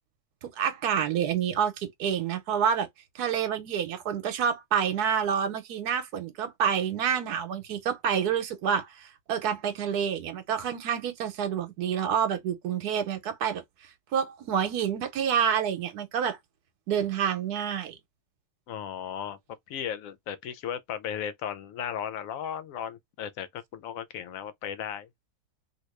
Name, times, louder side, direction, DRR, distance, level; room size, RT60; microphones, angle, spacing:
voice 1, 0.4-2.9 3.1-13.6 14.1-16.4 16.9-18.0, right 8 dB, 90° right, 1.3 m, -28 dB
voice 2, 18.7-19.4 19.7-25.1, left 9 dB, 65° left, 1.0 m, -35 dB
2.9 x 2.6 x 3.1 m
omnidirectional pair, 1.6 m